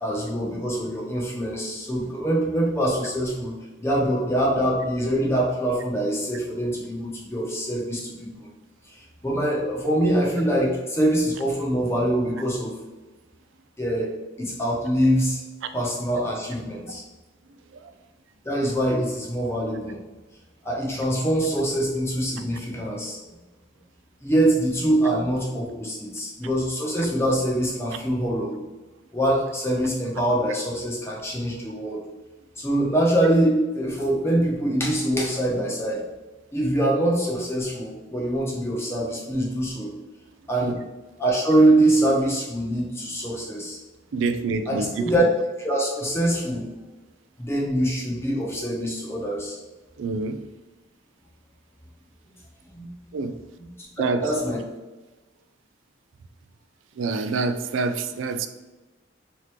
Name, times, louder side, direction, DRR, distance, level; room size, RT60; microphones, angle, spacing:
voice 1, 0.0-3.5 3.8-8.3 8.9-12.7 13.8-14.1 14.4-15.4 15.7-17.0 18.4-20.0 20.6-23.2 24.2-28.6 29.1-32.0 32.6-36.0 36.5-39.9 40.5-40.8 41.2-43.8 44.7-45.3 45.6-46.7 47.4-49.6 52.7-52.9 53.6-53.7 54.0-54.6, right 1 dB, 15° left, -3 dB, 0.8 m, -24 dB
voice 2, 44.1-45.1 50.0-50.4 53.1-53.3 54.0-54.4 57.0-58.5, right 4 dB, 75° right, 9 dB, 0.3 m, -26 dB
3.6 x 3.0 x 3.5 m, 1.2 s
head